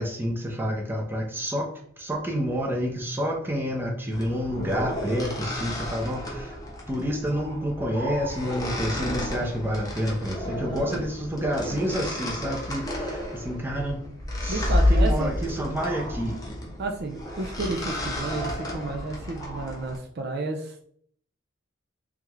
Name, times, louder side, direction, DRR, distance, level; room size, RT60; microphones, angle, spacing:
voice 1, 0.0-1.7 2.0-6.6 6.9-14.0 14.4-16.4, equal, 10° right, 0 dB, 0.8 m, -29 dB
sound 1, 4.1-20.0, left 1 dB, 20° left, 1.0 m, -30 dB
voice 2, 10.4-11.0 14.5-15.3 16.8-20.9, right 3 dB, 55° right, 3 dB, 0.5 m, -32 dB
3.5 x 3.4 x 3.1 m, 0.63 s
head